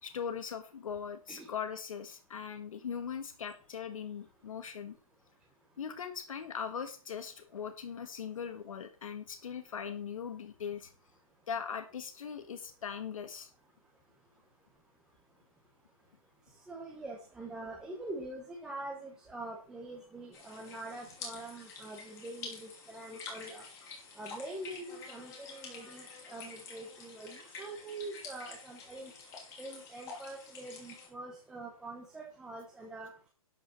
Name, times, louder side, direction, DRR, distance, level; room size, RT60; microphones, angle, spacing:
voice 1, 0.0-5.0 5.8-10.9 11.5-13.5, left 7 dB, 65° left, 7 dB, 1.5 m, -40 dB
voice 2, 16.7-23.6 24.2-29.1 29.6-33.1, right 2 dB, 5° right, -1 dB, 0.9 m, -44 dB
sound 1, 20.3-31.1, left 4 dB, 15° left, 2.9 m, -48 dB
11.5 x 5.0 x 6.8 m, 0.39 s
hypercardioid pair, 165°, 19 cm